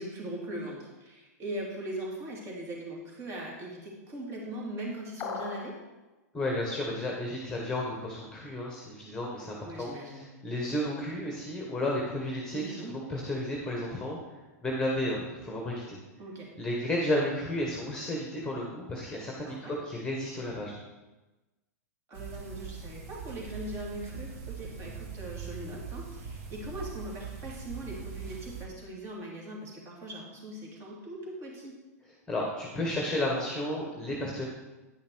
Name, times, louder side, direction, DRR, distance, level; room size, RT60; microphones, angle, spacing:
voice 1, 0.0-5.8 9.6-10.3 12.5-12.9 16.2-16.5 19.4-19.8 22.1-31.7, right 1 dB, 30° right, -2 dB, 2.7 m, -40 dB
sound 1, 5.2-5.8, left 6 dB, 30° left, 1.2 m, -36 dB
voice 2, 6.3-12.6 12.9-14.2 14.6-16.0 16.6-20.7 32.3-34.5, left 1 dB, 10° left, -2 dB, 1.4 m, -32 dB
sound 2, 22.1-28.7, right 6 dB, 55° right, 1.5 m, -41 dB
10.0 x 5.6 x 4.6 m, 1.1 s
hypercardioid pair, 120°, 9 cm